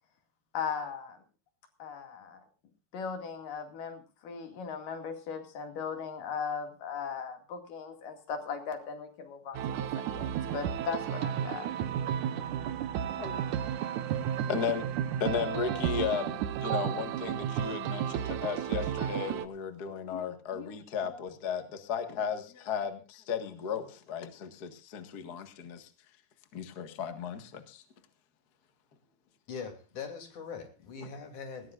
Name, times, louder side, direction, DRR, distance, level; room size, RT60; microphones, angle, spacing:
voice 1, 0.5-1.2 1.8-2.4 2.9-11.7, left 6 dB, 90° left, 4.0 m, -38 dB
sound 1, 9.5-19.5, right 9 dB, 75° right, 2.3 m, -33 dB
voice 2, 14.4-25.9 26.5-27.8, left 7 dB, 40° left, 1.7 m, -35 dB
voice 3, 29.5-31.7, left 5 dB, 65° left, 4.4 m, -41 dB
19.0 x 18.5 x 2.5 m
omnidirectional pair, 3.7 m